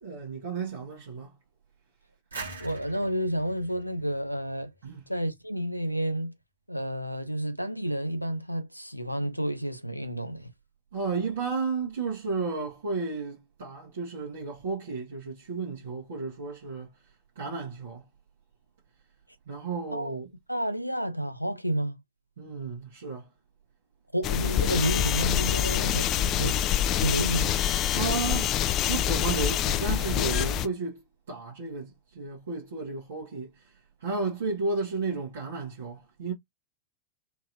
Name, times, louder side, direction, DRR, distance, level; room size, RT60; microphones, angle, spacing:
voice 1, 0.0-1.3 4.8-5.1 10.9-16.9 17.3-18.1 19.5-20.3 22.4-23.3 27.9-28.5 28.9-31.0 31.3-36.3, right 4 dB, 60° right, 1.5 m, -33 dB
sound 1, 2.3-5.0, right 3 dB, 75° right, 1.8 m, -43 dB
voice 2, 2.6-4.7 5.1-6.3 6.7-10.5 19.9-20.2 20.5-22.0 24.1-26.6 27.0-27.6, right 1 dB, 90° left, 0.6 m, -30 dB
sound 2, 24.2-30.7, left 10 dB, 35° left, 0.5 m, -26 dB
4.4 x 3.0 x 2.6 m
figure-of-eight pair, 90°, 0 cm